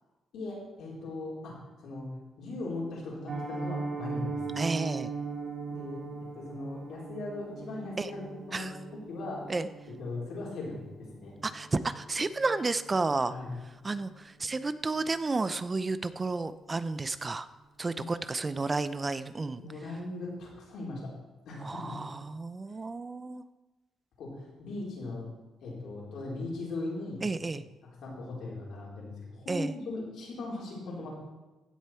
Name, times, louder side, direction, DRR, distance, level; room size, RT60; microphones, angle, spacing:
voice 1, 0.3-1.6 1.8-2.1 2.4-4.6 5.7-6.0 6.3-8.7 9.1-9.5 10.0-10.8 11.1-11.3 13.3-13.5 17.9-18.1 19.6-21.1 21.5-22.0 22.7-22.8 24.2-25.2 25.6-27.2 28.0-31.1, left 2 dB, 75° left, -4 dB, 4.1 m, -38 dB
Piano, 3.3-14.2 14.4-14.6 15.0-15.1 15.5-15.7 16.0-16.1, right 4 dB, 50° right, 2.0 m, -40 dB
voice 2, 4.6-5.1 8.0-8.1 8.5-8.7 9.5-9.7 11.4-13.3 13.8-17.5 17.8-19.6 21.6-23.4 27.2-27.6 29.5-29.7, right 3 dB, 25° right, 13 dB, 0.5 m, -31 dB
16.0 x 6.8 x 4.4 m, 1.2 s
cardioid pair, 90°, 0 cm